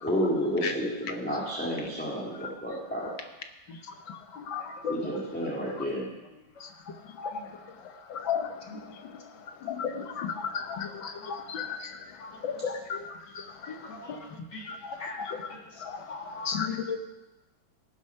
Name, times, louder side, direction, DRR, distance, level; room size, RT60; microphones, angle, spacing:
voice 1, 0.0-3.1 4.9-6.1, equal, 5° left, -6 dB, 2.2 m, -30 dB
voice 2, 4.5-4.9 7.2-7.3 8.1-8.5 9.6-11.8 12.4-13.0 14.7-15.4 15.8-16.0 16.5-17.0, left 7 dB, 85° left, 6 dB, 2.0 m, -33 dB
voice 3, 13.7-14.2 14.5-14.7 15.0-15.2 16.1-16.6, left 2 dB, 60° left, 1 dB, 2.4 m, -41 dB
18.5 x 7.3 x 5.7 m, 1.1 s
omnidirectional pair, 2.0 m